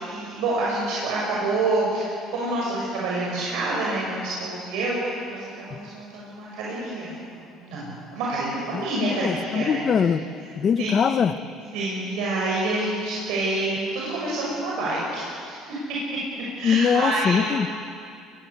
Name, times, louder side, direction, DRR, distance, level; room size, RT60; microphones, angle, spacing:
voice 1, 0.0-7.2 7.6-9.8 10.8-10.9 11.7-15.6 16.3-17.5, right 2 dB, 80° right, -5 dB, 6.5 m, -27 dB
voice 2, 8.7-10.2 10.6-11.4 16.6-17.7, left 7 dB, 35° left, 12 dB, 1.0 m, -22 dB
23.0 x 22.0 x 8.1 m, 2.4 s
cardioid pair, 135°, 0 cm